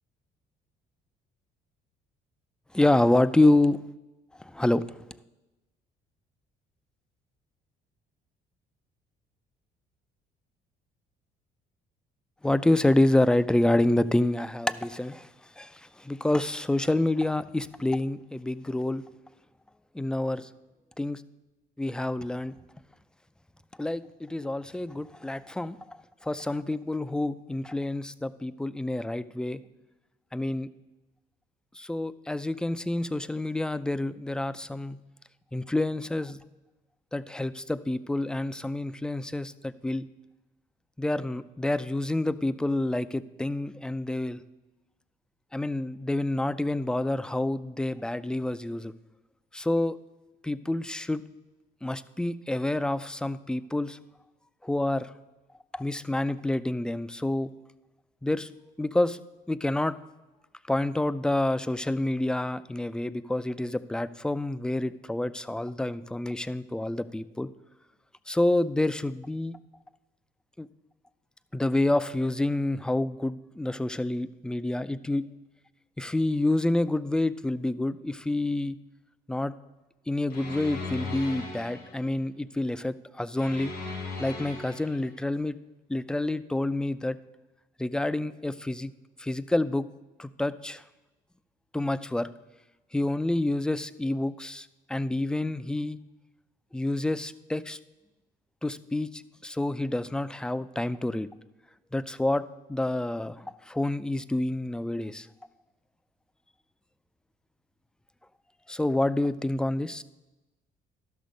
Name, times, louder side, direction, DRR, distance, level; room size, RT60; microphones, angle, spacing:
voice 1, 2.7-3.8 4.4-4.8 12.4-15.3 15.6-19.0 19.9-20.5 21.0-21.2 21.8-22.5 23.8-29.6 30.3-30.7 31.8-35.0 35.5-36.4 37.1-40.1 41.0-44.4 45.5-48.9 49.5-50.0 50.4-51.2 51.8-54.0 54.6-55.1 55.7-57.5 58.2-58.5 58.8-59.2 59.5-59.9 60.7-67.5 68.3-69.6 70.6-70.7 71.5-75.2 76.0-78.8 79.3-79.5 80.1-83.7 84.2-85.6 85.9-87.2 87.8-88.9 89.2-89.9 90.2-90.8 91.7-92.3 92.9-96.0 96.7-97.8 98.6-101.3 101.9-102.4 102.7-105.3 108.7-110.0, left 1 dB, 5° left, 14 dB, 0.3 m, -28 dB
sound 1, 80.3-82.1 83.4-85.1, left 3 dB, 85° left, 2.8 m, -38 dB
12.5 x 6.2 x 5.2 m, 1.1 s
cardioid pair, 110°, 17 cm